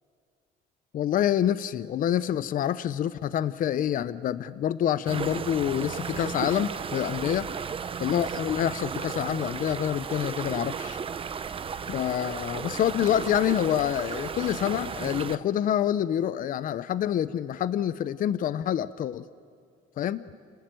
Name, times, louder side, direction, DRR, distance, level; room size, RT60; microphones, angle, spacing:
voice 1, 0.9-7.5 8.0-11.0 11.9-19.2 20.0-20.2, left 10 dB, 55° left, 15 dB, 0.7 m, -27 dB
sound 1, 5.1-15.4, right 6 dB, 30° right, 0.8 m, -34 dB
29.0 x 18.0 x 9.2 m, 2.3 s
cardioid pair, 110°, 17 cm